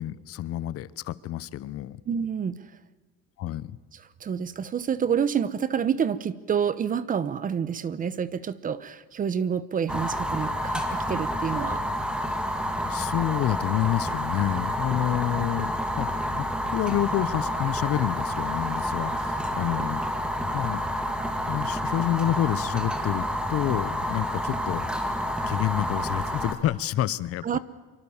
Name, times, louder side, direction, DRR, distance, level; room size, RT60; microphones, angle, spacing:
voice 1, 0.0-2.0 3.4-3.8 12.9-16.1 16.4-20.0 20.5-20.8 21.5-25.2 25.5-27.6, left 13 dB, 50° left, 18 dB, 0.9 m, -28 dB
voice 2, 2.1-2.6 4.2-11.8 27.4-27.6, right 7 dB, 25° right, 17 dB, 0.9 m, -28 dB
Fire, 9.9-26.5, equal, 5° right, 2.2 m, -29 dB
26.0 x 24.0 x 7.2 m, 1.3 s
cardioid pair, 160°, 31 cm